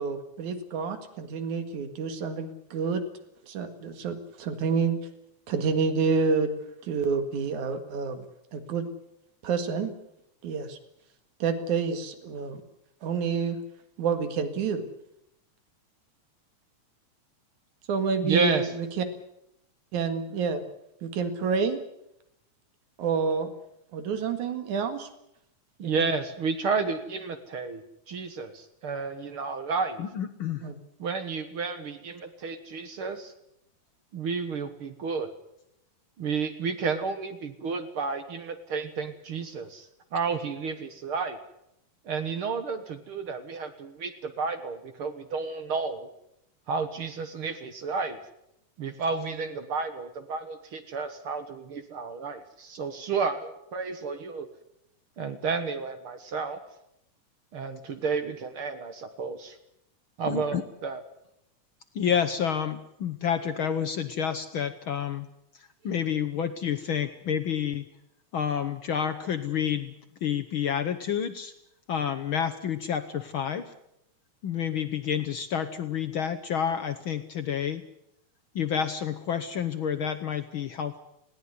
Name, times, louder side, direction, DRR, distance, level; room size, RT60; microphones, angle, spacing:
voice 1, 0.0-3.0 3.5-5.1 5.5-6.5 6.8-8.2 8.5-8.9 9.4-9.9 10.4-10.8 11.4-12.6 13.0-13.6 14.0-14.8 17.9-19.0 19.9-20.6 21.0-21.8 23.0-23.5 23.9-25.1 25.8-26.0 30.6-30.7, right 5 dB, 80° right, 9 dB, 3.3 m, -28 dB
voice 2, 18.2-18.7 25.8-30.0 31.0-33.3 34.1-35.3 36.2-39.9 40.1-41.4 42.1-46.1 46.7-48.2 48.8-54.5 55.2-56.6 57.5-59.6 60.2-61.0, right 5 dB, 50° right, 9 dB, 2.0 m, -31 dB
voice 3, 30.0-30.7 60.2-60.6 61.9-65.3 65.5-67.9 68.3-69.9 70.2-71.5 71.9-73.7 74.4-77.8 78.5-81.0, left 8 dB, 65° left, 9 dB, 1.3 m, -29 dB
20.0 x 17.5 x 9.6 m, 0.81 s
omnidirectional pair, 3.4 m